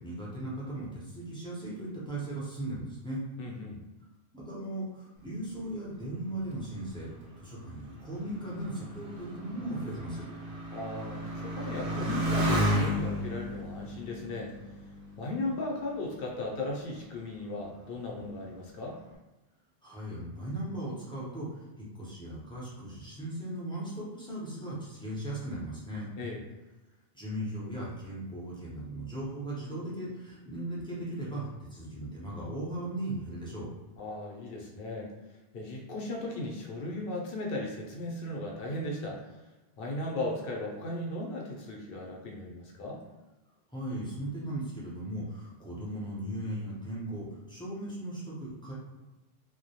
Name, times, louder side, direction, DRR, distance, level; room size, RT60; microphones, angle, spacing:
voice 1, 0.0-3.2 4.3-7.1 7.4-10.2 19.8-21.5 21.8-26.1 27.1-33.7 43.7-48.7, right 1 dB, 5° left, -7 dB, 0.5 m, -37 dB
voice 2, 3.4-3.8 10.7-14.5 15.2-19.0 26.2-26.4 34.0-35.1 35.5-39.2 39.8-43.0, left 2 dB, 65° left, -1 dB, 0.8 m, -36 dB
Motorcycle, 6.6-15.6 16.3-16.9, equal, 65° right, 0.7 m, -33 dB
2.2 x 2.1 x 2.7 m, 1.1 s
omnidirectional pair, 1.1 m